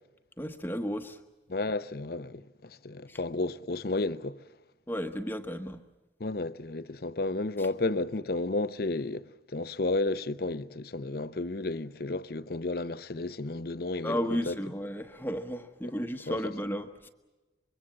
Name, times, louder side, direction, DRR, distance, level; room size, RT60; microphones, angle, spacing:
voice 1, 0.4-1.2 3.1-3.2 4.9-5.8 14.0-17.1, equal, 10° left, 1.1 m, -33 dB
voice 2, 1.5-4.4 6.2-9.3 9.5-14.6 16.3-16.4, left 2 dB, 55° left, 0.7 m, -32 dB
25.0 x 22.5 x 7.5 m
head